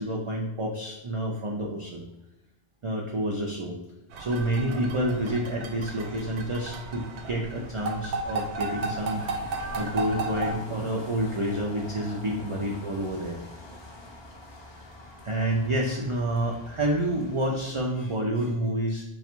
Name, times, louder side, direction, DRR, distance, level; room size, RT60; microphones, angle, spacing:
voice 1, 0.0-2.0 2.8-3.7 4.2-9.2 9.8-13.4 15.2-19.0, right 1 dB, 55° right, -1 dB, 0.3 m, -28 dB
sound 1, 4.1-10.6, right 3 dB, 75° right, 0.8 m, -34 dB
sound 2, 4.5-17.8, left 2 dB, 40° left, 0.4 m, -46 dB
3.3 x 2.4 x 4.3 m, 0.95 s
omnidirectional pair, 1.2 m